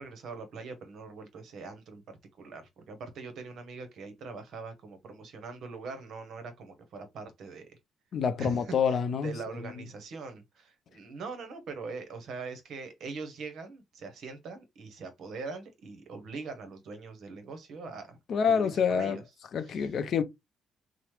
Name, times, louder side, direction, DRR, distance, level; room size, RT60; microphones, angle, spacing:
voice 1, 0.0-7.8 8.4-18.2 18.4-19.2 19.6-20.0, right 4 dB, 70° right, 0.8 m, -42 dB
voice 2, 8.1-9.3 18.3-19.2 19.5-20.2, left 6 dB, 60° left, 0.4 m, -27 dB
2.9 x 2.0 x 3.1 m
cardioid pair, 90°, 0 cm